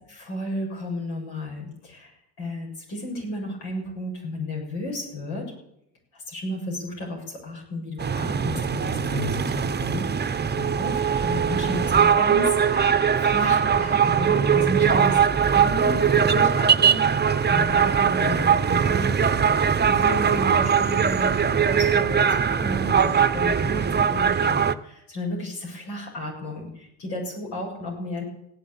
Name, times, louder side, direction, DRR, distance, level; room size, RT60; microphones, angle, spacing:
voice 1, 0.0-5.5 6.1-15.2 15.5-19.1 19.5-28.2, left 1 dB, 80° left, 0 dB, 7.2 m, -33 dB
sound 1, 8.0-24.7, right 7 dB, 20° right, 0.8 m, -21 dB
16.0 x 9.9 x 8.8 m, 0.78 s
supercardioid pair, 75°, 45 cm